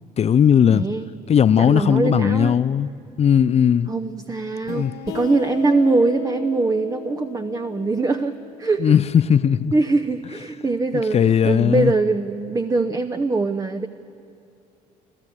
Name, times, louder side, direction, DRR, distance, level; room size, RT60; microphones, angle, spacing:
voice 1, 0.2-0.9 1.3-2.9 3.2-3.9 4.7-4.9 8.8-9.7 10.9-11.9, left 8 dB, 30° left, 0.5 m, -17 dB
voice 2, 0.7-1.1 1.6-2.6 3.9-9.0 9.7-13.9, right 3 dB, 15° right, 0.8 m, -22 dB
sound 1, 4.7-10.0, left 10 dB, 60° left, 1.5 m, -37 dB
28.0 x 13.5 x 9.1 m
figure-of-eight pair, 55°, 21 cm